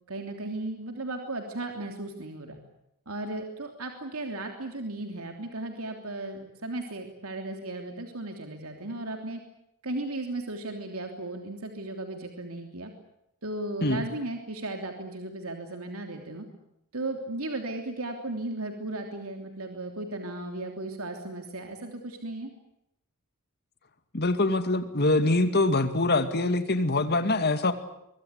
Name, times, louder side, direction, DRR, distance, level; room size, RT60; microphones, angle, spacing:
voice 1, 0.1-2.6 3.1-9.4 9.8-12.9 13.4-16.4 16.9-22.5, right 2 dB, 70° right, 4 dB, 3.3 m, -35 dB
voice 2, 24.1-27.7, left 2 dB, 45° left, 10 dB, 2.4 m, -24 dB
24.0 x 23.5 x 8.4 m, 0.80 s
head